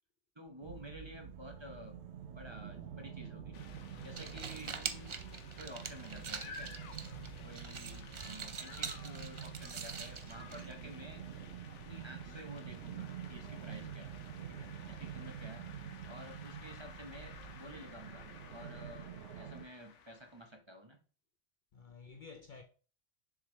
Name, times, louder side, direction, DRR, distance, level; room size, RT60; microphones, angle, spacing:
voice 1, 0.4-1.9 2.3-3.6 4.0-5.2 5.6-6.8 7.4-11.2 11.7-14.2 14.5-15.6 16.0-21.0, equal, 25° right, 0.9 m, -51 dB
sound 1, 0.6-19.6, right 8 dB, 70° right, 0.9 m, -47 dB
sound 2, 3.5-20.6, left 5 dB, 85° left, 1.1 m, -54 dB
voice 2, 3.8-4.5 7.0-7.5 9.6-9.7 15.1-15.3 21.7-22.6, left 4 dB, 55° left, 0.6 m, -54 dB
sound 3, 4.0-11.0, right 5 dB, 45° right, 0.4 m, -45 dB
6.7 x 4.7 x 3.1 m
omnidirectional pair, 1.2 m